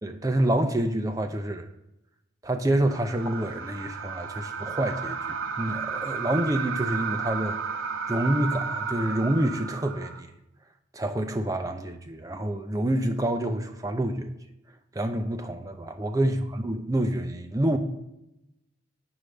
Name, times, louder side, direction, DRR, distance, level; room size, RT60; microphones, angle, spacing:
voice 1, 0.0-1.7 2.4-7.6 8.1-10.3 10.9-14.3 14.9-17.8, right 1 dB, 15° right, 6 dB, 0.4 m, -27 dB
sound 1, 2.8-10.2, right 6 dB, 90° right, 0.5 m, -33 dB
7.9 x 3.3 x 6.2 m, 0.87 s
head